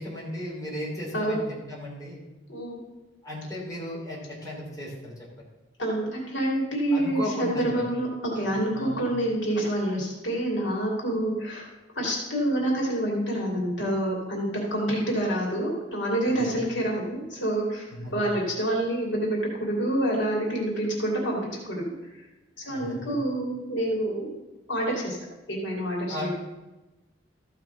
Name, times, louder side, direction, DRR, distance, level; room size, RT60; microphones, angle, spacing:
voice 1, 0.0-2.2 3.2-5.1 6.9-7.8 8.3-9.0 16.3-16.5 17.9-18.3 22.6-23.1 26.1-26.3, left 1 dB, 20° left, -5 dB, 3.3 m, -36 dB
voice 2, 1.1-1.5 2.5-2.9 5.8-11.7 11.9-17.8 18.1-22.2 22.6-24.3 24.7-25.2 25.5-26.3, right 1 dB, 70° left, -2 dB, 2.8 m, -27 dB
14.0 x 5.8 x 5.9 m, 1.1 s
head